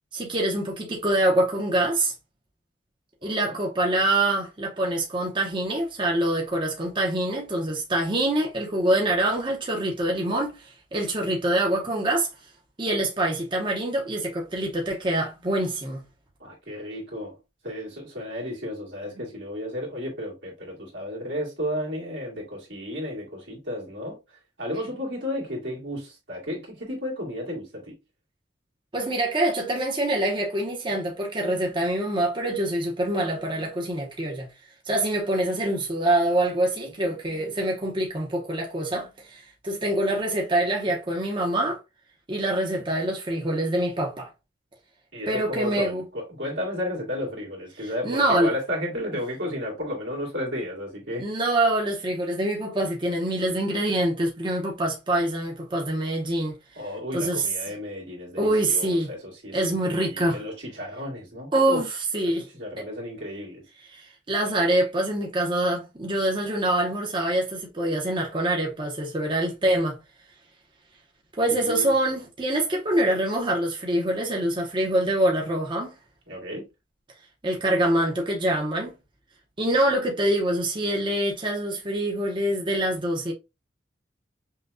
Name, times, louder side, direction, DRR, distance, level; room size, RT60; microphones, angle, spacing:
voice 1, 0.1-2.1 3.2-12.3 12.8-16.0 28.9-34.5 34.9-41.8 42.3-44.3 45.3-46.0 47.8-48.5 51.2-56.5 57.1-57.5 58.4-59.1 59.5-60.4 61.5-61.9 62.1-62.5 63.9-70.0 71.4-75.9 77.4-78.9 79.6-83.3, right 1 dB, 25° right, 0.8 m, -25 dB
voice 2, 3.2-3.6 16.4-17.4 17.6-28.0 45.1-51.2 56.7-61.8 62.2-63.6 71.5-72.2 76.3-76.7, left 1 dB, 80° right, 2.0 m, -33 dB
5.6 x 2.2 x 2.6 m
head